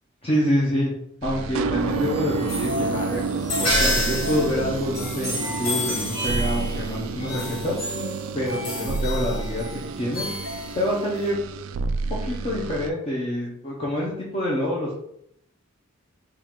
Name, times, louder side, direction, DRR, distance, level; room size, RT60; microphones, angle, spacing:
voice 1, 0.2-0.9 1.2-3.2 3.6-7.8 8.3-9.6 10.0-10.3 10.8-11.4 12.2-15.0, left 1 dB, 30° left, -5 dB, 0.7 m, -26 dB
sound 1, 1.2-12.9, right 4 dB, 75° right, 0.3 m, -30 dB
sound 2, 1.8-11.3, left 1 dB, 85° left, 1.3 m, -30 dB
4.6 x 2.4 x 3.5 m, 0.73 s
head